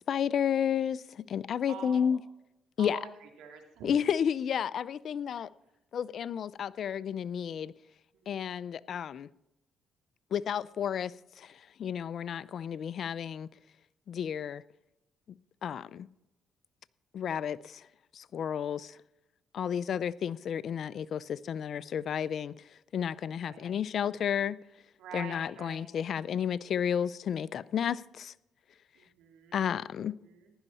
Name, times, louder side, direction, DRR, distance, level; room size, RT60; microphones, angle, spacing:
voice 1, 0.1-2.2 2.8-3.0 3.8-5.5 5.9-7.7 8.3-9.3 10.3-11.1 11.4-13.5 14.1-14.6 15.6-16.1 17.1-17.8 18.1-19.0 19.5-22.5 22.9-24.6 25.1-28.3 29.5-30.1, left 8 dB, 60° left, 0.4 m, -32 dB
voice 2, 1.7-2.1 2.8-3.9 8.1-8.4 23.4-23.7 25.0-25.9 28.9-29.7 30.2-30.5, right 7 dB, 90° right, 2.5 m, -46 dB
15.5 x 11.0 x 4.1 m
cardioid pair, 90°, 0 cm